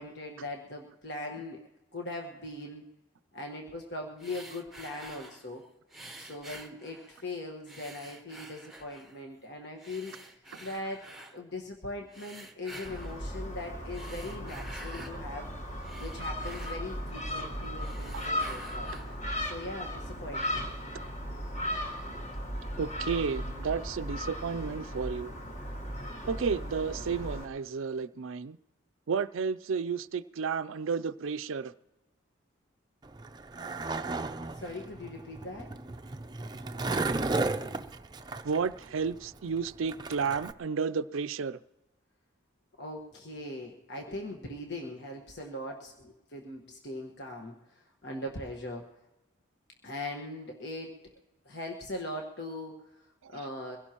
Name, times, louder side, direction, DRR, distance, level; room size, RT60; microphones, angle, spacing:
voice 1, 0.0-1.6 1.9-2.8 3.3-5.6 6.2-11.1 11.3-18.9 19.4-20.7 34.5-35.7 42.8-48.9 49.8-51.1 51.4-53.8, left 1 dB, 55° left, 1.4 m, -40 dB
sound 1, 4.2-5.5 5.9-7.3 7.7-9.2 9.8-11.4 12.1-13.2 13.8-15.2 15.6-17.4 17.7-19.2, right 1 dB, ahead, 0.9 m, -49 dB
Gull seagull, 12.8-27.4, equal, 35° left, 1.4 m, -37 dB
voice 2, 22.8-25.3 26.3-28.6 29.1-31.7 38.4-41.6 53.2-53.4, right 5 dB, 85° right, 0.5 m, -32 dB
Skateboard, 33.1-40.5, right 3 dB, 20° right, 0.5 m, -34 dB
23.5 x 16.5 x 3.0 m
head